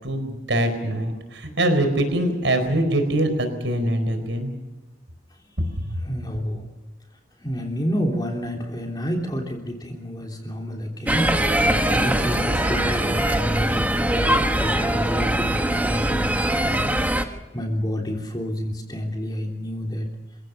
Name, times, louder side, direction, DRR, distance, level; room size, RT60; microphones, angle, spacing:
voice 1, 0.0-4.5 5.9-6.0, right 1 dB, 75° right, 8 dB, 4.5 m, -23 dB
voice 2, 6.0-6.6 7.4-20.1, equal, 20° left, 1 dB, 3.3 m, -29 dB
sound 1, 11.1-17.2, right 1 dB, 10° right, 1.3 m, -22 dB
26.5 x 17.0 x 7.0 m, 1.2 s
head